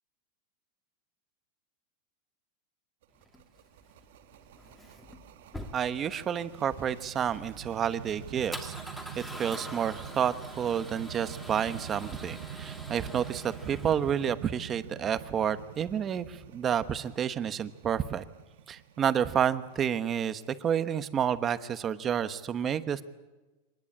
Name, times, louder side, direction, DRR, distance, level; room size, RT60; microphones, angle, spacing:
sound 1, 3.0-21.8, right 9 dB, 75° right, 1.2 m, -46 dB
Male speech man speaking / Car / Engine starting, 3.2-14.3, equal, 5° left, 2.3 m, -46 dB
voice 1, 5.7-8.7 9.2-18.2 18.7-23.1, right 8 dB, 20° right, 12 dB, 1.1 m, -30 dB
25.0 x 20.0 x 8.7 m, 1.2 s
supercardioid pair, 160°, 0 cm